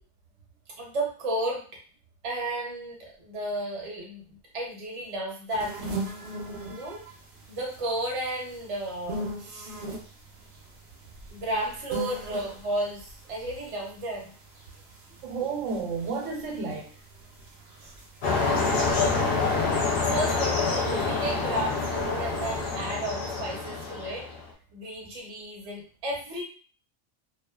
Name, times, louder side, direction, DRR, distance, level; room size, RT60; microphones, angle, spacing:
voice 1, 0.8-1.6 2.2-5.8 6.7-7.0 7.5-9.8 11.3-14.3 17.8-17.9 19.9-24.3 24.7-26.4, right 1 dB, 35° right, -1 dB, 0.6 m, -33 dB
sound 1, 5.5-22.8, right 1 dB, 65° right, 0.8 m, -42 dB
voice 2, 6.1-7.1 12.3-12.4 15.2-16.9, right 5 dB, 80° right, 1 dB, 1.0 m, -33 dB
sound 2, 18.2-24.4, left 4 dB, 60° left, 0.7 m, -27 dB
2.3 x 2.3 x 2.3 m, 0.40 s
omnidirectional pair, 1.3 m